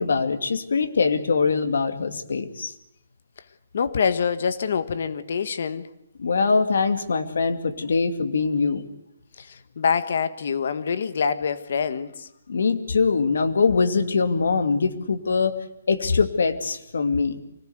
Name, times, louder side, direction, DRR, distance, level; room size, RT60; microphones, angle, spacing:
voice 1, 0.0-2.7 6.2-8.9 12.5-15.6 15.9-17.4, left 4 dB, 75° left, 7 dB, 2.5 m, -23 dB
voice 2, 3.7-5.9 9.4-12.3, left 6 dB, 50° left, 12 dB, 1.4 m, -25 dB
24.5 x 18.0 x 8.1 m, 0.80 s
hypercardioid pair, 175°, 0 cm